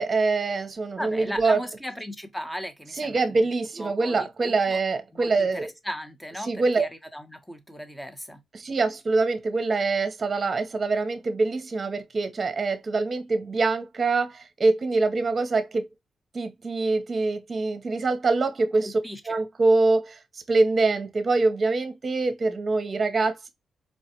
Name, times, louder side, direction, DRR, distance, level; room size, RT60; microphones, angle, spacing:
voice 1, 0.0-1.6 3.0-5.7 6.4-6.8 8.5-15.9 16.3-19.0 19.3-23.5, right 3 dB, 45° right, 0.9 m, -24 dB
voice 2, 1.0-3.4 3.8-4.2 4.4-4.8 5.1-8.4 18.8-19.4, equal, 5° left, 1.1 m, -37 dB
4.5 x 2.4 x 2.8 m
cardioid pair, 70°, 0 cm